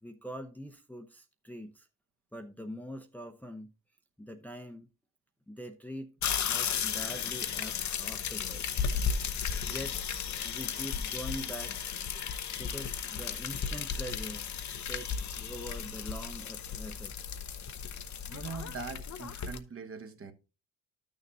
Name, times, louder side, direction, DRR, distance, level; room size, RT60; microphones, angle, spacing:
voice 1, 0.0-1.9 2.3-3.7 4.2-4.9 5.5-6.1 6.5-8.9 9.7-10.1 10.3-11.8 12.6-14.5 14.9-17.1, equal, 5° left, 0.8 m, -43 dB
sound 1, 6.2-19.6, left 7 dB, 45° left, 0.9 m, -35 dB
voice 2, 18.3-20.3, right 5 dB, 35° right, 1.1 m, -42 dB
11.5 x 6.7 x 2.7 m
supercardioid pair, 75°, 39 cm